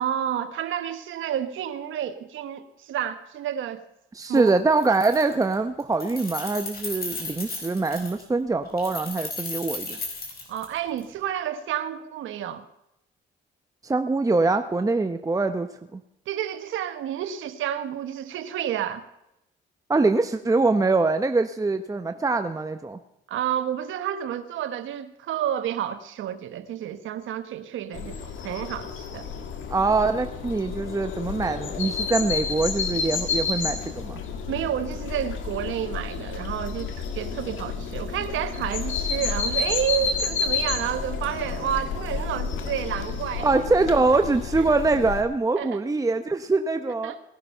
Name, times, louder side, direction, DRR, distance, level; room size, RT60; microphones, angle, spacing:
voice 1, 0.0-3.8 4.3-4.6 10.5-12.6 16.3-19.0 23.3-29.3 34.5-43.6 44.7-44.8 45.6-45.8 47.0-47.2, right 10 dB, 80° right, 1.2 m, -30 dB
voice 2, 4.1-10.0 13.8-16.0 19.9-23.0 29.7-34.2 43.4-47.1, right 3 dB, 15° right, 0.8 m, -23 dB
Keys jangling, 4.4-4.5 4.8-5.5 5.8-8.2 8.8-11.0, left 3 dB, 50° left, 4.9 m, -35 dB
sound 1, 27.9-45.2, left 5 dB, 75° left, 2.0 m, -30 dB
18.5 x 11.5 x 5.7 m
cardioid pair, 90°, 20 cm